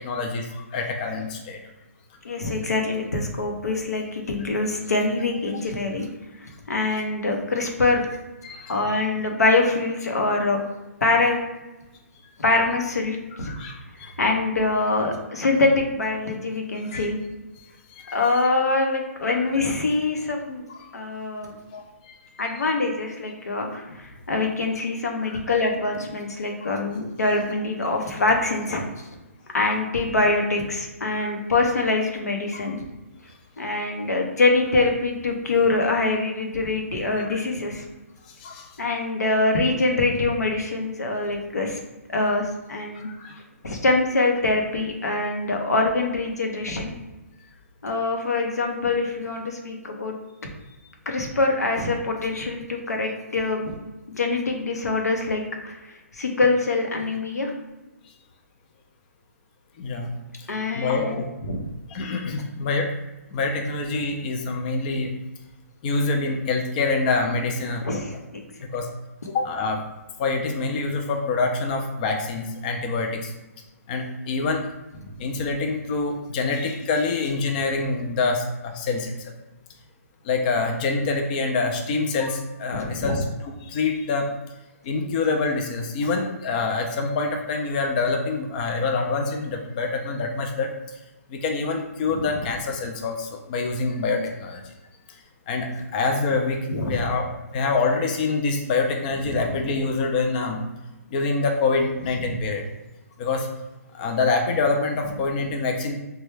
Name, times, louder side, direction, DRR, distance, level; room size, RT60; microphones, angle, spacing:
voice 1, 0.0-1.6 8.4-8.8 13.5-14.1 16.9-17.1 17.6-18.4 20.8-20.9 21.7-22.2 25.2-25.4 26.6-26.7 31.1-31.3 37.1-37.2 38.3-38.8 42.9-43.4 59.8-60.1 60.7-61.3 61.9-63.0 63.3-65.1 65.8-67.8 68.6-68.9 69.3-69.8 70.2-73.3 73.9-74.6 75.2-79.3 80.2-84.3 84.8-90.7 91.3-94.6 95.5-100.6 101.1-102.6 103.2-103.5 103.9-105.9, left 3 dB, 30° left, 3 dB, 0.4 m, -26 dB
voice 2, 2.2-6.1 6.4-8.1 8.7-10.6 11.0-11.4 12.4-13.5 14.0-17.2 18.1-20.7 20.9-21.6 22.4-28.8 29.5-32.8 33.6-37.8 38.8-43.1 43.6-46.9 47.8-50.2 51.1-53.7 54.1-57.5 60.5-61.6 67.8-68.4 75.0-75.1 82.7-83.2 92.1-92.3 96.7-97.1 99.3-99.5 102.2-102.4, left 3 dB, 90° left, 2 dB, 0.7 m, -24 dB
3.2 x 2.2 x 3.2 m, 1.1 s
hypercardioid pair, 145°, 8 cm